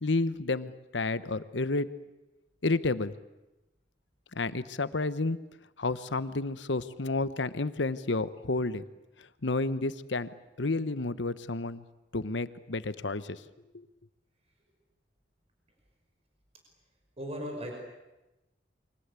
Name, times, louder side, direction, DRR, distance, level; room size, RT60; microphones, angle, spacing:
voice 1, 0.0-1.9 2.6-3.1 4.4-5.4 5.8-8.8 9.2-10.3 10.6-11.8 12.1-13.4 13.7-13.8, left 3 dB, 80° left, 14 dB, 1.1 m, -30 dB
voice 2, 17.2-17.7, equal, 35° right, 2 dB, 5.5 m, -36 dB
28.5 x 24.0 x 8.3 m, 1.0 s
head